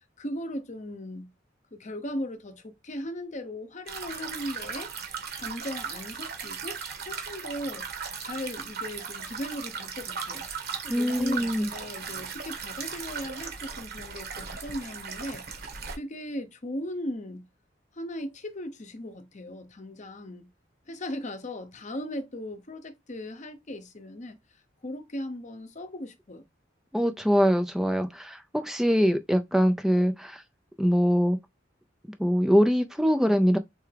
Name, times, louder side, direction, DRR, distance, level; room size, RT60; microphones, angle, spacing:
voice 1, 0.2-1.3 1.7-4.9 5.3-7.9 8.2-10.5 10.8-17.5 17.9-20.5 20.9-24.4 24.8-26.4, left 1 dB, 40° left, 0.8 m, -37 dB
sound 1, 3.9-16.0, right 6 dB, 60° right, 1.3 m, -37 dB
voice 2, 10.9-11.7 26.9-30.4 30.8-31.4 32.2-33.6, equal, ahead, 0.4 m, -23 dB
4.5 x 3.4 x 3.3 m
head